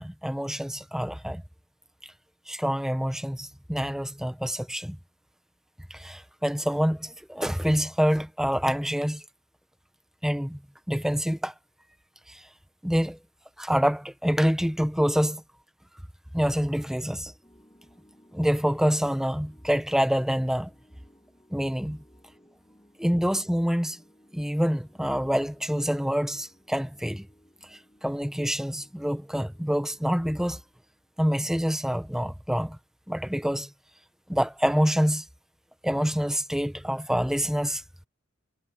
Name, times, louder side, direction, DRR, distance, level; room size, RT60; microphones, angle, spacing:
voice 1, 0.0-1.4 2.5-5.0 5.9-9.2 10.2-10.6 10.9-11.5 12.3-12.4 12.8-13.2 13.6-15.4 16.3-17.3 18.3-20.7 21.5-22.0 23.0-24.0 24.3-27.3 28.0-30.6 31.2-32.8 33.1-33.7 34.3-35.2 35.8-37.8, equal, ahead, 0.9 m, -26 dB
sound 1, 17.4-31.8, equal, 15° left, 7.7 m, -60 dB
head